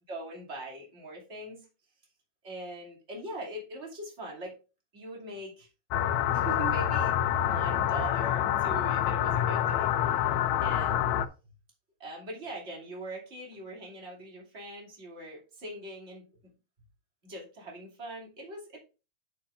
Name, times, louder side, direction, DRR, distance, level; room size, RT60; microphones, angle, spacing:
voice 1, 0.1-1.6 2.4-4.5 4.9-5.7 6.3-11.0 12.0-16.5 17.2-18.8, right 1 dB, 25° right, -2 dB, 2.7 m, -42 dB
sound 1, 5.9-11.3, left 10 dB, 80° left, 1.9 m, -27 dB
8.3 x 8.1 x 2.5 m, 0.31 s
omnidirectional pair, 3.4 m